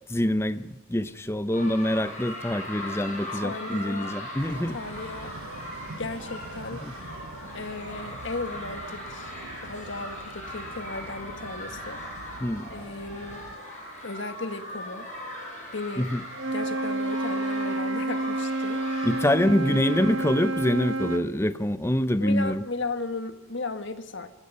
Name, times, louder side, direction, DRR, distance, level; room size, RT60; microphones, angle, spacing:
voice 1, 0.1-4.8 6.8-6.9 12.4-12.7 16.0-16.2 19.0-22.6, left 1 dB, 10° left, 0.8 m, -25 dB
sound 1, 1.5-20.2, left 1 dB, 35° left, 6.2 m, -39 dB
voice 2, 3.3-4.1 4.5-5.3 5.9-7.0 7.5-9.3 9.6-12.4 12.7-13.4 14.0-15.1 15.7-16.1 16.5-19.1 22.2-24.3, left 3 dB, 55° left, 1.7 m, -36 dB
sound 2, 4.4-13.6, right 3 dB, 80° right, 1.0 m, -45 dB
Wind instrument woodwind instrument, 16.3-21.3, right 2 dB, 60° right, 1.1 m, -29 dB
27.0 x 19.0 x 5.6 m
head